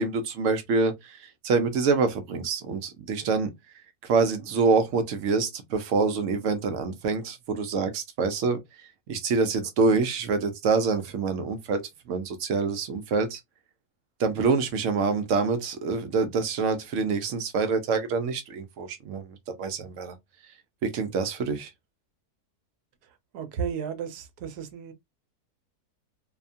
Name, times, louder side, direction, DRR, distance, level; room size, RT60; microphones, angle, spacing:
voice 1, 0.0-3.5 4.0-11.8 12.1-13.4 14.2-20.1 20.8-21.7, right 4 dB, 65° right, 0.8 m, -26 dB
voice 2, 23.3-24.9, right 7 dB, 80° right, 1.2 m, -33 dB
2.7 x 2.2 x 2.5 m
omnidirectional pair, 1.7 m